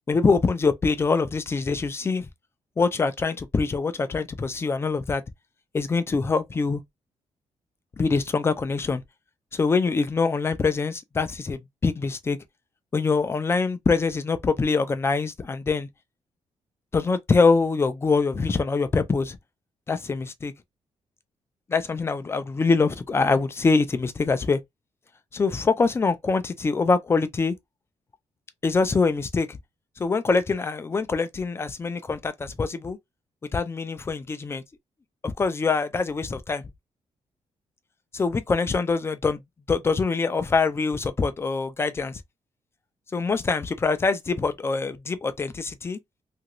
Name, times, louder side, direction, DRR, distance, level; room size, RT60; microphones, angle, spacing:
voice 1, 0.1-2.3 2.8-5.2 5.7-6.8 8.0-9.0 9.5-12.4 12.9-15.9 16.9-19.4 19.9-20.5 21.7-24.6 25.3-27.5 28.6-29.6 30.0-33.0 33.5-34.6 35.2-36.6 38.1-39.4 39.7-42.2 43.1-46.0, left 4 dB, 20° left, 0.4 m, -24 dB
3.0 x 2.5 x 2.9 m
wide cardioid pair, 175°, 12 cm